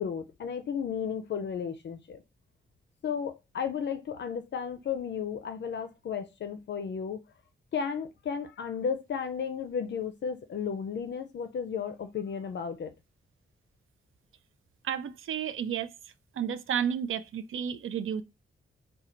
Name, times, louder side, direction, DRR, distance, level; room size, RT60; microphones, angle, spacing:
voice 1, 0.0-2.2 3.0-7.2 7.7-12.9, left 7 dB, 60° left, 0.5 m, -34 dB
voice 2, 14.8-15.9 16.4-18.2, right 8 dB, 80° right, 0.5 m, -31 dB
3.8 x 2.2 x 4.3 m
wide cardioid pair, 165°, 21 cm